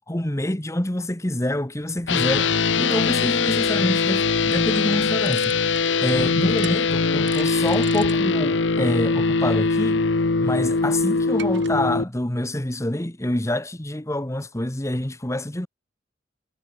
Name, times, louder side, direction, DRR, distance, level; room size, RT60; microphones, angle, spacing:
voice 1, 0.0-2.5 2.8-5.6 6.0-10.0 10.4-15.7, left 1 dB, 15° left, 1.3 m, -26 dB
sound 1, 1.8-11.7, right 7 dB, 70° right, 3.7 m, -45 dB
sound 2, 2.1-12.0, left 4 dB, 85° left, 1.0 m, -21 dB
head